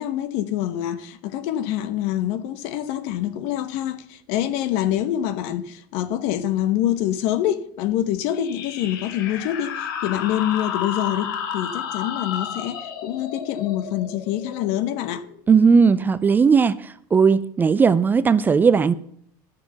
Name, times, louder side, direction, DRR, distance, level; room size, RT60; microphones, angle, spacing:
voice 1, 0.0-15.3, left 12 dB, 65° left, 1.1 m, -26 dB
sound 1, 8.3-15.6, left 8 dB, 90° left, 1.5 m, -32 dB
voice 2, 15.5-18.9, right 5 dB, 15° right, 0.4 m, -17 dB
12.0 x 6.6 x 7.0 m
supercardioid pair, 140°, 11 cm